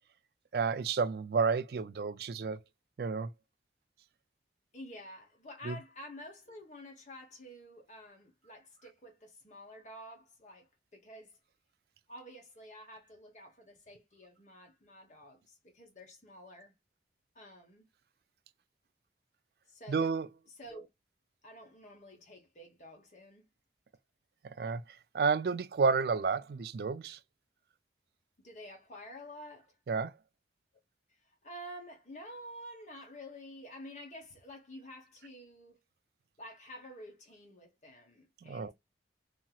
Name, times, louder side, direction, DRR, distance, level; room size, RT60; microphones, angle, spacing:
voice 1, 0.5-2.6 3.0-3.3 5.6-5.8 19.9-20.3 24.4-24.8 25.1-27.2 29.9-30.1 38.4-38.7, right 5 dB, 60° right, 0.3 m, -31 dB
voice 2, 4.7-11.4 12.1-16.7 17.3-17.9 19.7-20.1 20.6-20.9 21.4-23.4 28.4-29.8 31.1-35.8 36.4-38.7, equal, 40° left, 1.0 m, -50 dB
2.9 x 2.7 x 2.2 m
head